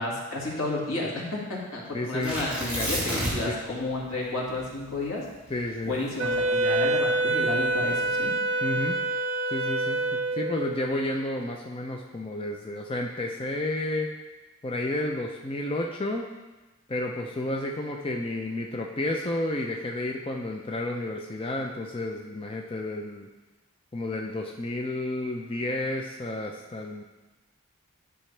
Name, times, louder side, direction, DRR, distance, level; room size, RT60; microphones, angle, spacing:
voice 1, 0.0-5.2 5.9-8.3, left 2 dB, 85° left, -4 dB, 2.0 m, -31 dB
voice 2, 1.9-2.4 2.8-2.9 3.5-3.6 5.5-6.0 8.6-9.0 9.5-14.1 14.6-16.3 16.9-23.3 23.9-27.0, left 1 dB, 25° left, 1 dB, 0.5 m, -31 dB
Tearing, 2.2-3.6 3.9-4.0 4.5-6.9 7.6-8.1, equal, 5° right, 2.1 m, -31 dB
Wind instrument woodwind instrument, 6.2-10.7, right 2 dB, 60° right, 0.6 m, -26 dB
10.5 x 5.7 x 3.3 m, 1.1 s
head